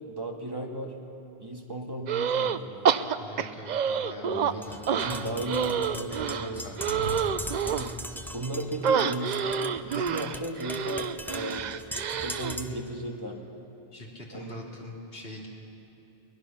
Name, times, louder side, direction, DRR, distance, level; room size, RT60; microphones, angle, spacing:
voice 1, 0.1-0.9 1.4-3.1 4.2-4.7 4.9-6.6 7.6-7.9 8.3-13.5 14.3-14.5, right 1 dB, 20° right, 1 dB, 1.9 m, -35 dB
sound 1, 2.1-2.6 2.8-4.5 4.9-7.9 8.8-12.6, right 7 dB, 50° right, 0.6 m, -28 dB
voice 2, 3.2-6.9 12.6-12.8 13.9-15.5, left 1 dB, 70° left, -2 dB, 2.9 m, -43 dB
Tap, 4.6-12.9, equal, ahead, 0.6 m, -41 dB
sound 2, 6.9-9.4, left 1 dB, 75° right, 6.3 m, -40 dB
23.0 x 19.0 x 5.9 m, 2.8 s
omnidirectional pair, 1.1 m